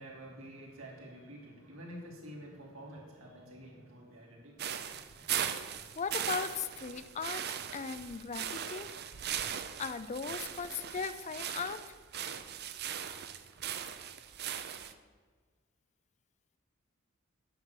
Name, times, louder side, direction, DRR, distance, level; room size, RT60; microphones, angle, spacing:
voice 1, 0.0-5.3, right 1 dB, 75° right, -2 dB, 3.3 m, -49 dB
sound 1, 4.6-14.9, right 9 dB, 50° right, 0.6 m, -39 dB
voice 2, 6.0-8.9 9.8-11.8, left 5 dB, 35° left, 13 dB, 0.5 m, -38 dB
10.0 x 6.5 x 8.1 m, 1.5 s
head